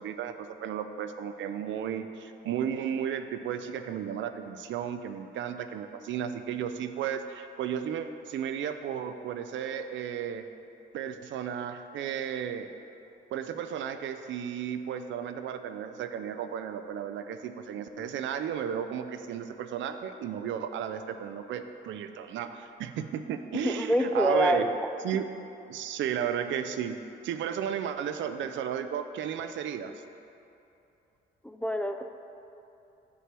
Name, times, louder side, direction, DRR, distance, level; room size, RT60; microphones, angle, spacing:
voice 1, 0.0-10.4 10.9-12.7 13.3-24.7 25.0-25.3 25.7-29.9, right 8 dB, 70° right, 9 dB, 0.4 m, -34 dB
voice 2, 23.5-24.7 31.4-32.1, equal, 5° left, 6 dB, 0.3 m, -26 dB
8.2 x 3.2 x 6.0 m, 2.8 s
cardioid pair, 90°, 20 cm